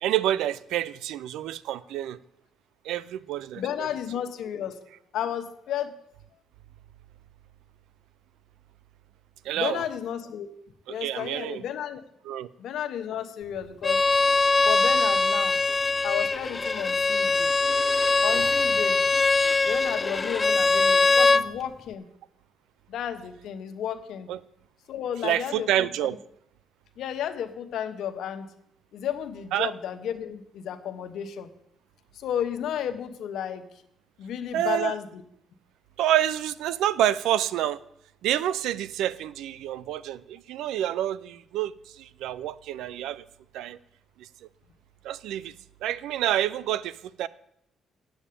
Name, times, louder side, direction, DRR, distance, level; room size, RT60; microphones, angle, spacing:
voice 1, 0.0-2.2 2.8-3.6 9.4-9.8 10.9-11.6 12.2-12.5 18.3-18.5 24.3-24.4 25.2-26.2 29.5-29.7 34.5-35.0 36.0-37.8 38.2-43.3 43.5-43.8 44.2-44.3 45.0-45.5 45.8-47.3, right 12 dB, 90° right, 18 dB, 0.4 m, -28 dB
voice 2, 3.6-4.8 5.1-5.9 9.6-10.5 10.9-12.0 12.6-14.0 14.6-15.6 16.0-17.5 18.2-19.0 19.7-22.1 22.9-24.3 24.9-26.2 27.0-28.5 28.9-31.5 32.1-33.6 34.2-35.2, left 9 dB, 75° left, 7 dB, 1.1 m, -32 dB
Bowed string instrument, 13.8-21.4, left 3 dB, 25° left, 0.4 m, -22 dB
8.7 x 7.1 x 8.5 m, 0.74 s
cardioid pair, 90°, 0 cm